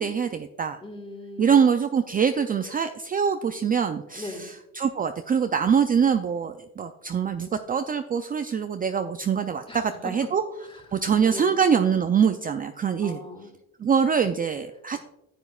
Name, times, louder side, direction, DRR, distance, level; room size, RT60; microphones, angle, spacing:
voice 1, 0.0-0.8 1.4-10.4 10.9-13.2 13.8-15.0, right 7 dB, 30° right, 8 dB, 0.4 m, -24 dB
voice 2, 0.8-1.6 4.1-4.5 9.7-9.8 10.6-10.8 11.3-11.6 13.0-13.5 14.9-15.0, left 2 dB, 15° left, 5 dB, 1.6 m, -39 dB
10.5 x 7.9 x 2.4 m, 0.91 s
cardioid pair, 90°, 30 cm